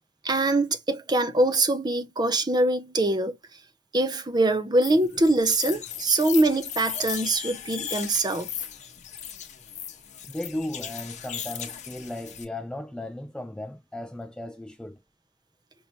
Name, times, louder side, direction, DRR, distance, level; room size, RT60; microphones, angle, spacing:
voice 1, 0.2-3.4 3.9-8.5, right 2 dB, 20° right, 0.7 m, -23 dB
reinsamba Nightingale song hitech-busychatting-rwrk, 4.8-12.4, left 9 dB, 40° left, 0.9 m, -37 dB
voice 2, 10.3-15.0, left 1 dB, 5° left, 0.3 m, -36 dB
5.4 x 2.8 x 2.8 m
head